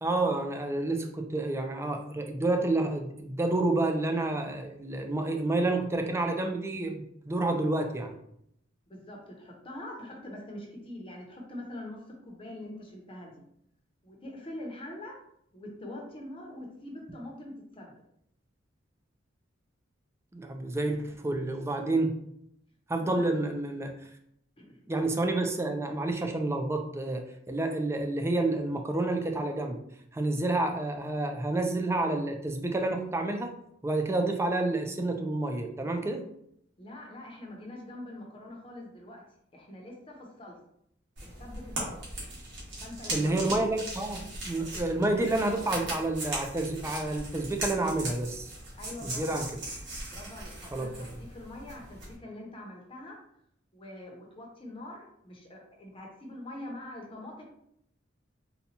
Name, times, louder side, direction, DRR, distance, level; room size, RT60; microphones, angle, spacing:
voice 1, 0.0-8.2 20.3-22.1 22.9-23.9 24.9-29.8 30.1-33.5 33.8-36.2 43.1-48.5 49.0-49.5 50.7-51.1, right 2 dB, 15° right, 4 dB, 0.4 m, -29 dB
voice 2, 8.9-13.4 14.0-15.2 15.5-17.9 22.9-23.3 24.6-24.8 36.8-39.2 39.5-40.6 41.2-42.0 42.8-43.4 48.8-49.4 50.1-53.2 53.7-57.4, left 1 dB, 30° left, 0 dB, 0.7 m, -44 dB
sound 1, 41.2-52.2, right 2 dB, 65° right, 1.3 m, -39 dB
4.0 x 2.2 x 2.8 m, 0.72 s
head